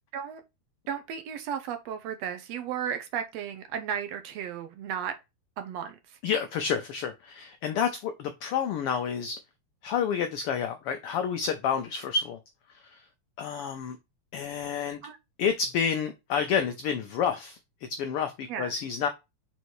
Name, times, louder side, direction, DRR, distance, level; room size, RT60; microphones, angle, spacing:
voice 1, 0.9-5.2 5.6-6.2 15.0-15.2 18.5-18.7, right 8 dB, 70° right, 1.8 m, -34 dB
voice 2, 6.2-9.4 9.8-12.4 12.9-13.0 13.4-14.0 14.3-15.0 15.4-17.6 18.0-19.1, left 7 dB, 85° left, 1.2 m, -29 dB
5.4 x 4.0 x 4.6 m
omnidirectional pair, 3.3 m